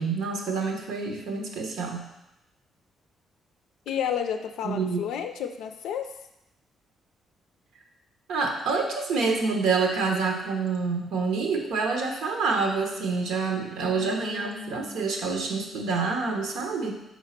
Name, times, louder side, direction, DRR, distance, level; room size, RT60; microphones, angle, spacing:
voice 1, 0.0-2.1 4.6-5.0 8.3-16.9, right 4 dB, 80° right, 2 dB, 1.1 m, -27 dB
voice 2, 3.9-6.1 13.8-15.0, left 8 dB, 85° left, 6 dB, 0.4 m, -32 dB
4.6 x 4.1 x 5.8 m, 0.88 s
cardioid pair, 90°, 0 cm